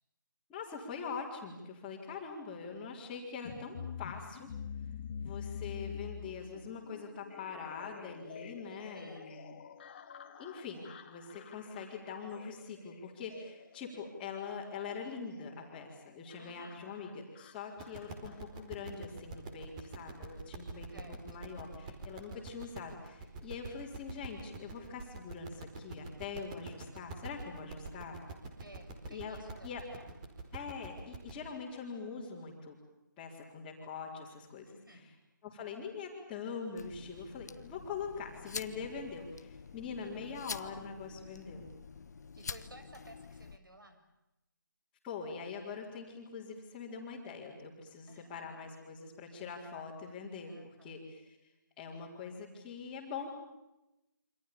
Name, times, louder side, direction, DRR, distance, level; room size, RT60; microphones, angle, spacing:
voice 1, 0.5-4.5 5.2-9.5 10.4-28.2 29.1-29.4 29.6-29.8 30.5-32.8 33.2-34.7 34.9-35.1 35.4-41.7 45.0-51.4 51.8-53.3, left 5 dB, 10° left, -8 dB, 4.3 m, -43 dB
sound 1, 3.4-18.6, left 7 dB, 30° left, 2.2 m, -47 dB
voice 2, 8.6-9.3 16.4-16.8 20.9-21.5 28.6-30.1 34.7-35.1 42.4-44.0 48.1-48.5 50.5-51.0, right 1 dB, 85° right, 7 dB, 7.1 m, -56 dB
sound 2, 17.8-31.4, right 2 dB, 20° right, 4.7 m, -46 dB
sound 3, 36.8-43.6, left 5 dB, 55° left, 1.4 m, -47 dB
28.5 x 26.0 x 7.0 m, 0.93 s
figure-of-eight pair, 160°, 11 cm